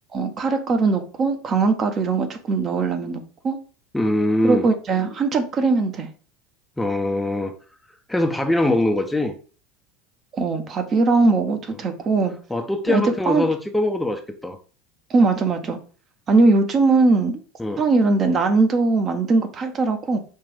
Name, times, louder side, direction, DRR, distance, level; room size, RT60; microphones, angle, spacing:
voice 1, 0.1-3.6 4.4-6.1 10.3-12.3 12.9-13.4 15.1-15.8 16.3-17.4 17.8-20.2, right 3 dB, 35° right, 6 dB, 0.8 m, -20 dB
voice 2, 3.9-4.7 6.8-7.5 8.1-9.3 12.5-14.6 17.6-17.8, left 1 dB, 5° left, 5 dB, 0.5 m, -22 dB
5.4 x 2.5 x 3.4 m, 0.39 s
figure-of-eight pair, 75°, 0 cm